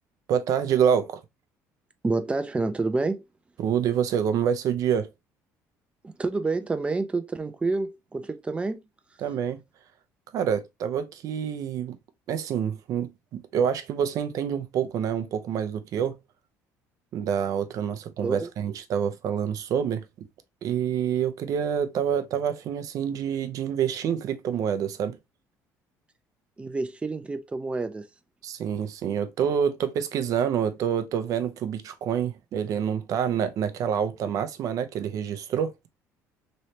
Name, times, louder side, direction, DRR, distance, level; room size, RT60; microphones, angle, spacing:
voice 1, 0.3-1.2 3.6-5.1 9.2-9.6 10.3-12.0 12.3-16.2 17.1-20.3 20.6-25.2 28.4-35.7, right 8 dB, 60° right, 0.6 m, -27 dB
voice 2, 2.0-3.2 6.0-8.8 18.2-18.5 26.6-28.1, right 3 dB, 15° right, 0.6 m, -28 dB
3.1 x 3.1 x 2.8 m
cardioid pair, 100°, 7 cm